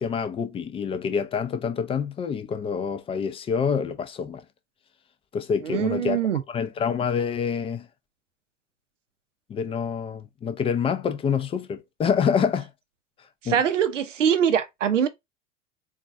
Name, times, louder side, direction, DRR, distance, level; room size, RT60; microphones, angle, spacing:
voice 1, 0.0-4.4 5.3-6.2 6.5-7.9 9.5-12.7 13.5-13.6, left 6 dB, 15° left, 0.4 m, -27 dB
voice 2, 5.6-6.4 13.4-15.1, right 8 dB, 85° right, 0.6 m, -23 dB
4.1 x 2.3 x 2.3 m
figure-of-eight pair, 85°, 36 cm